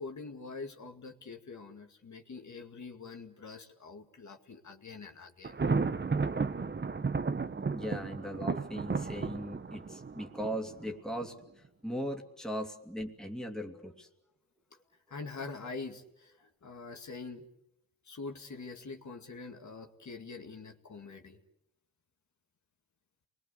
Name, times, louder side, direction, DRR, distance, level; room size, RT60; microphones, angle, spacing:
voice 1, 0.0-5.6 15.1-17.5 18.0-21.4, left 4 dB, 55° left, 3 dB, 2.2 m, -44 dB
Thunder, 5.4-11.3, right 4 dB, 30° right, 1.0 m, -33 dB
voice 2, 7.7-14.1, equal, ahead, 2 dB, 2.7 m, -39 dB
29.5 x 22.0 x 8.4 m, 0.83 s
wide cardioid pair, 95°, 34 cm